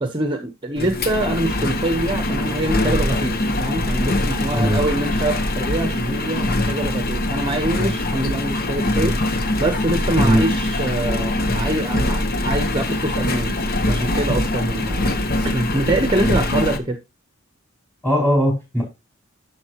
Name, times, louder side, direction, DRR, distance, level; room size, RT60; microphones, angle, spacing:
voice 1, 0.0-13.6 13.9-17.0, right 1 dB, 25° right, 7 dB, 0.9 m, -25 dB
Engine, 0.8-16.8, left 1 dB, 45° left, 1.0 m, -22 dB
voice 2, 18.0-18.8, equal, 10° left, -1 dB, 5.2 m, -18 dB
11.5 x 6.5 x 3.0 m, 0.25 s
head